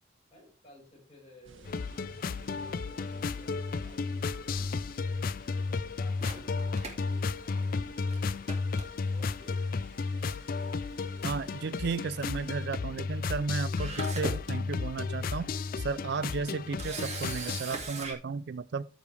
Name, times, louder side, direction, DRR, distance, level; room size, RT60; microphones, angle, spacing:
voice 1, 0.3-4.6 5.1-8.7 9.1-9.6, left 1 dB, 30° left, 5.8 m, -57 dB
sound 1, 1.4-12.7, right 2 dB, 80° right, 1.4 m, -55 dB
sound 2, 1.7-17.6, left 4 dB, 45° left, 0.4 m, -33 dB
Camera, 6.2-7.8 8.1-8.2 8.5-9.3 10.2-10.5 10.8-10.9 13.3-13.4 13.8-14.5 15.1-15.2 16.8-18.1, right 3 dB, 35° right, 2.3 m, -40 dB
voice 2, 11.2-15.5 15.8-18.9, right 5 dB, 55° right, 0.4 m, -34 dB
14.5 x 5.1 x 3.4 m
head